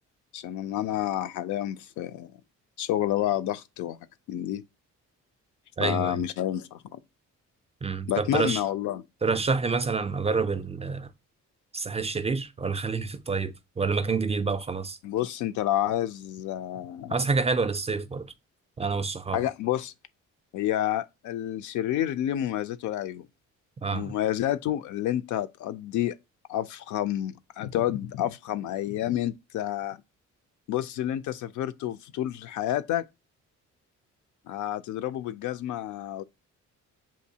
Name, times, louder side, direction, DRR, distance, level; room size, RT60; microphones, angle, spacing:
voice 1, 0.3-2.3 2.8-4.0 4.3-4.6 5.8-7.0 8.1-9.0 15.0-17.2 19.3-19.9 20.5-23.3 23.9-26.1 26.5-30.0 30.7-33.0 34.5-36.2, left 12 dB, 75° left, 0.5 m, -29 dB
voice 2, 5.8-6.2 7.8-8.6 9.2-11.1 11.7-15.0 17.1-18.3 18.8-19.4 23.8-24.1, right 4 dB, 20° right, 0.3 m, -28 dB
7.0 x 2.6 x 2.7 m
cardioid pair, 90°, 30 cm